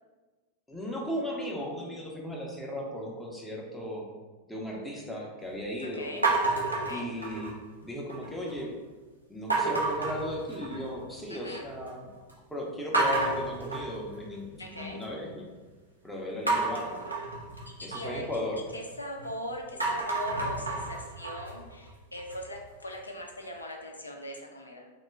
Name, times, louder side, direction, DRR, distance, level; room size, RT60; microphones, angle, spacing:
voice 1, 0.7-4.0 4.5-6.1 6.9-8.7 9.3-12.1 12.5-15.5 16.0-17.0 17.8-18.6, equal, 5° left, -2 dB, 0.5 m, -36 dB
voice 2, 5.9-6.3 6.7-7.1 11.3-11.6 14.6-15.0 17.7-18.4 18.7-24.9, left 1 dB, 80° left, 0 dB, 0.3 m, -40 dB
sound 1, 6.2-7.7 8.1-8.6 9.5-11.0 11.4-11.9 12.3-12.4 12.9-15.1 16.5-19.3 19.7-22.6, right 3 dB, 85° right, 0.4 m, -31 dB
2.3 x 2.1 x 3.2 m, 1.3 s
figure-of-eight pair, 90°, 0 cm